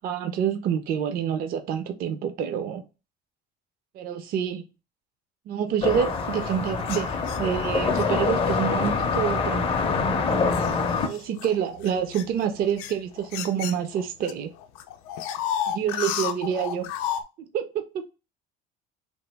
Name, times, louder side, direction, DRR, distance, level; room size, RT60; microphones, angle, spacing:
voice 1, 0.0-2.8 3.9-4.6 5.5-9.7 11.1-14.5 15.7-16.9 17.5-18.0, right 8 dB, 45° right, 0.4 m, -27 dB
sound 1, 5.8-11.1, left 4 dB, 25° left, 0.4 m, -25 dB
sound 2, 6.8-8.1 8.8-9.1 9.7-14.3 14.6-17.2, left 9 dB, 90° left, 0.5 m, -33 dB
2.9 x 2.3 x 3.3 m
cardioid pair, 140°, 21 cm